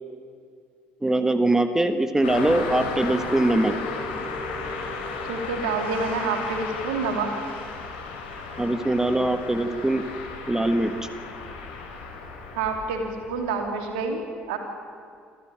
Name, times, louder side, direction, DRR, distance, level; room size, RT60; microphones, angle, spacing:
voice 1, 1.0-3.7 8.6-10.0 10.5-10.9, right 1 dB, 10° right, 9 dB, 1.6 m, -22 dB
Car passing by, 2.2-13.7, left 4 dB, 75° left, 3.6 m, -34 dB
voice 2, 5.3-7.3 12.6-14.2 14.5-14.6, right 4 dB, 75° right, 4 dB, 2.8 m, -27 dB
26.5 x 14.0 x 9.0 m, 2.2 s
figure-of-eight pair, 50°, 5 cm